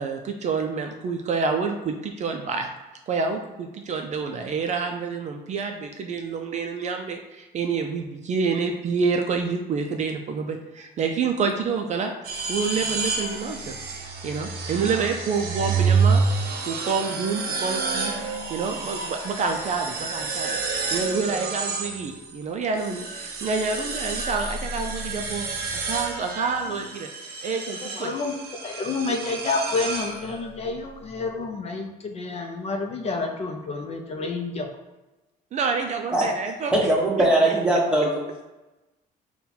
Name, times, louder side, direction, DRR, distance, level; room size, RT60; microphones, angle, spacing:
voice 1, 0.0-2.7 3.1-12.1 12.5-13.8 14.2-18.1 18.5-20.6 20.9-25.5 25.9-27.1 27.4-28.1 35.5-36.7 37.5-37.6, right 5 dB, 45° right, 4 dB, 0.4 m, -28 dB
sound 1, 12.2-22.4 22.8-30.6, right 4 dB, 65° right, 0.8 m, -29 dB
voice 2, 28.0-28.3 28.6-34.7, left 3 dB, 40° left, 2 dB, 0.5 m, -29 dB
voice 3, 36.7-38.2, right 1 dB, 5° right, -5 dB, 1.1 m, -20 dB
3.8 x 2.2 x 4.2 m, 1.1 s
cardioid pair, 110°, 17 cm